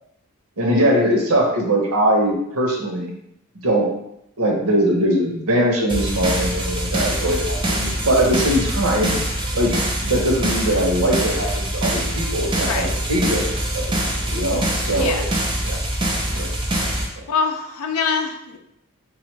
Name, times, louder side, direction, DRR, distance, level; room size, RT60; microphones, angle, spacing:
voice 1, 0.6-3.1 3.6-3.9 4.4-9.2 9.5-9.8 10.0-13.9 14.2-15.2 15.6-15.8 16.3-16.5, right 1 dB, 85° right, 0 dB, 0.8 m, -21 dB
sound 1, 5.9-17.1, right 1 dB, 20° right, 0.4 m, -24 dB
voice 2, 14.9-15.3 17.0-18.6, left 5 dB, 85° left, 4 dB, 0.4 m, -24 dB
3.5 x 2.4 x 3.1 m, 0.77 s
head